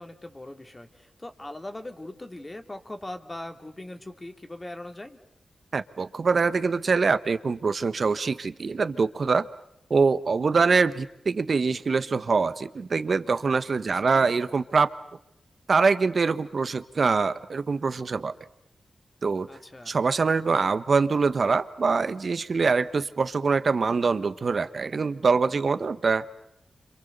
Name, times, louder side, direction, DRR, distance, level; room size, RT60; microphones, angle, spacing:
voice 1, 0.0-5.2 13.9-14.3 19.5-20.0, left 1 dB, 25° left, 6 dB, 2.8 m, -40 dB
voice 2, 5.7-9.5 9.9-14.9 15.7-18.3 19.2-19.5 19.9-26.3, right 4 dB, 60° right, 13 dB, 1.3 m, -24 dB
29.5 x 26.5 x 6.9 m, 0.79 s
cardioid pair, 60°, 0 cm